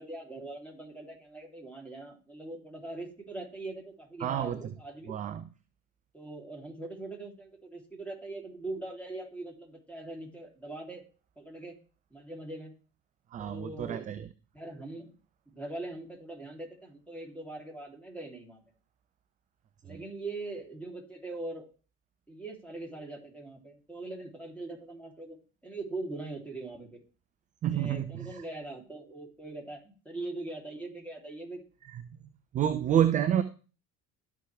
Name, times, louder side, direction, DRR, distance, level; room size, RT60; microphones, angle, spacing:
voice 1, 0.0-5.1 6.1-11.0 11.4-11.8 12.1-12.7 13.4-14.1 14.5-15.1 15.5-18.6 19.8-21.6 22.3-25.4 25.6-27.0 27.7-31.6, right 2 dB, 5° left, -1 dB, 3.3 m, -41 dB
voice 2, 4.2-4.6 5.1-5.4 13.3-14.3 19.9-20.0 27.6-28.4 31.9-32.0 32.5-33.4, right 10 dB, 20° right, 12 dB, 0.3 m, -29 dB
12.5 x 4.7 x 3.4 m, 0.36 s
figure-of-eight pair, 60°, 48 cm